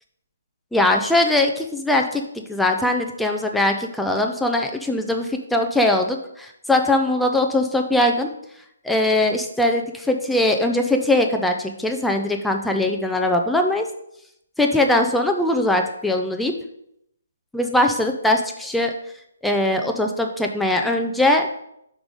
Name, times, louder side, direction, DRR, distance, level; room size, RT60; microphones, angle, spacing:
voice 1, 0.7-8.3 8.8-13.9 14.6-16.5 17.5-18.9 19.4-21.5, left 1 dB, ahead, 3 dB, 0.3 m, -21 dB
5.2 x 5.2 x 4.8 m, 0.75 s
hypercardioid pair, 170°, 0 cm